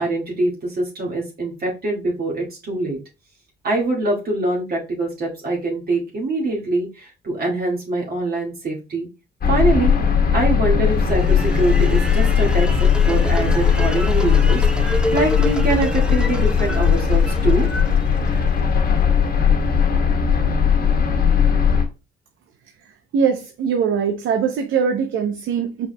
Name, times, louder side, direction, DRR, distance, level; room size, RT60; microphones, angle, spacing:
voice 1, 0.0-3.0 3.6-9.1 9.5-9.9 10.3-12.7 13.1-17.7, right 2 dB, 50° right, 2.0 m, -23 dB
sound 1, 9.4-21.8, left 7 dB, 50° left, 1.3 m, -18 dB
sound 2, 10.9-19.0, equal, 5° right, 0.7 m, -30 dB
voice 2, 23.1-25.9, right 6 dB, 75° right, 0.7 m, -21 dB
5.6 x 4.2 x 2.2 m
cardioid pair, 90°, 20 cm